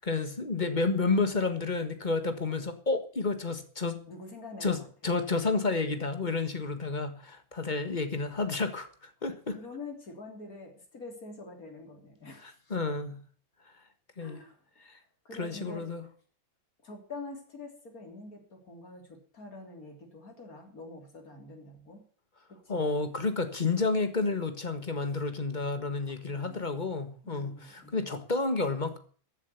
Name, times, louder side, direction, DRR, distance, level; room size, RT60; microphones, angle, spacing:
voice 1, 0.0-4.0 4.6-4.8 5.0-9.6 12.7-13.2 14.2-14.4 14.9-15.0 15.4-16.0 22.7-29.0, left 3 dB, 35° left, 1.7 m, -30 dB
voice 2, 4.1-4.9 9.5-12.9 14.2-15.8 16.8-22.0 22.5-22.8 26.1-26.8 27.2-28.2, left 3 dB, 80° left, 3.8 m, -46 dB
14.5 x 7.5 x 8.2 m
omnidirectional pair, 1.5 m